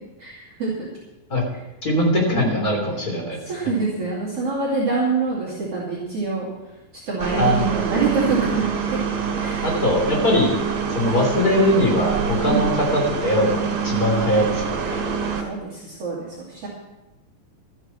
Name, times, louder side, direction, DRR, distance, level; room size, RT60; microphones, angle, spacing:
voice 1, 0.2-0.9 3.5-6.5 7.1-9.0 9.4-9.8 12.4-12.6 14.8-15.1 15.4-16.7, right 4 dB, 40° right, -6 dB, 3.6 m, -25 dB
voice 2, 1.8-3.4 7.4-7.8 9.6-10.5 10.9-15.0, left 1 dB, 25° left, -1 dB, 3.4 m, -21 dB
sound 1, 7.2-15.4, right 6 dB, 80° right, 3.9 m, -26 dB
13.5 x 10.0 x 5.9 m, 0.99 s
omnidirectional pair, 4.2 m